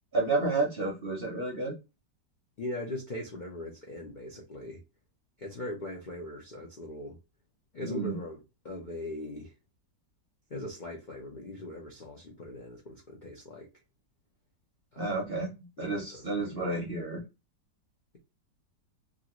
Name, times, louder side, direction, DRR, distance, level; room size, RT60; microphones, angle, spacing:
voice 1, 0.1-1.7 7.8-8.2 15.0-15.5 15.8-17.2, right 3 dB, 50° right, 0.7 m, -30 dB
voice 2, 2.6-4.8 5.4-7.2 7.7-9.5 10.5-13.7 14.9-15.3 15.8-16.8, left 1 dB, 85° left, 0.4 m, -40 dB
2.9 x 2.6 x 2.9 m
omnidirectional pair, 1.9 m